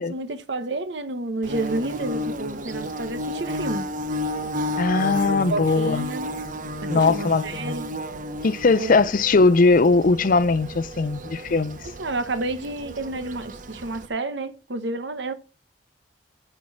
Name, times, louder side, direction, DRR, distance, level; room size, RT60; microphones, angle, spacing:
voice 1, 0.1-3.9 5.2-6.3 6.8-7.9 8.8-9.0 11.8-15.3, right 2 dB, 85° right, 1.1 m, -30 dB
Bird / Buzz, 1.4-14.1, equal, 50° right, 0.8 m, -32 dB
voice 2, 4.8-6.1 6.9-7.7 8.4-11.8, left 3 dB, 50° left, 0.5 m, -20 dB
10.5 x 4.6 x 7.3 m
head